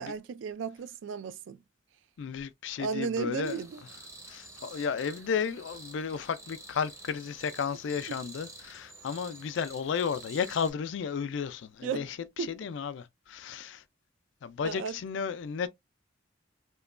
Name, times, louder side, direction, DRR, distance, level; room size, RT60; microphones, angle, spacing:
voice 1, 0.0-1.6 2.8-3.8 11.8-12.1 12.4-12.6 14.6-15.0, right 5 dB, 75° right, 0.3 m, -34 dB
voice 2, 2.2-3.6 4.3-13.8 14.4-15.7, left 6 dB, 70° left, 0.3 m, -33 dB
sound 1, 3.4-10.7, right 2 dB, 15° right, 0.6 m, -49 dB
3.0 x 2.2 x 2.3 m
head